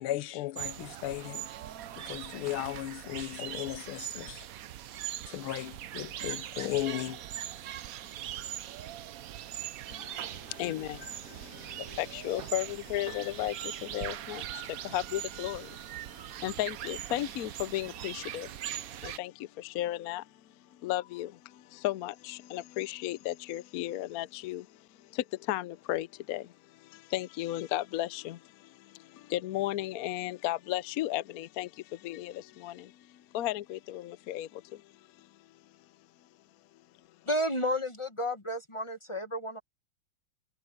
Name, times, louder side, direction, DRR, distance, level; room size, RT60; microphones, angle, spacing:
voice 1, 0.0-1.5 2.0-4.5 5.3-7.2, left 14 dB, 90° left, 1.6 m, -36 dB
sound 1, 0.6-19.2, right 12 dB, 85° right, 0.7 m, -41 dB
voice 2, 9.9-20.3 20.7-35.6, left 14 dB, 70° left, 0.8 m, -35 dB
voice 3, 37.3-39.6, equal, 25° left, 0.6 m, -32 dB
omnidirectional pair, 2.3 m